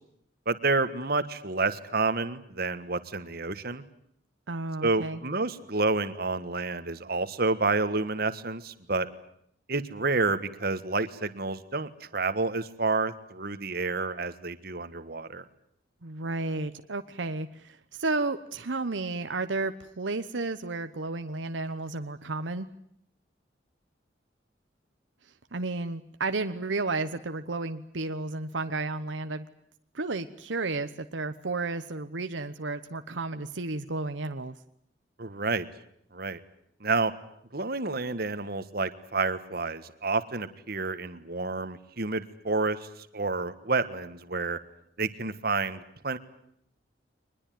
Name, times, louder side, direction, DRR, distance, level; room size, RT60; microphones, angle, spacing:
voice 1, 0.5-3.8 4.8-9.1 9.7-15.4 35.2-35.7 36.1-36.4 36.8-37.1 37.5-42.9 43.1-44.6 45.0-46.2, right 3 dB, 55° right, 12 dB, 1.6 m, -29 dB
voice 2, 4.5-5.2 16.0-22.7 25.5-29.5 29.9-34.6, right 3 dB, 85° right, 9 dB, 1.1 m, -32 dB
23.0 x 21.0 x 9.3 m, 0.71 s
head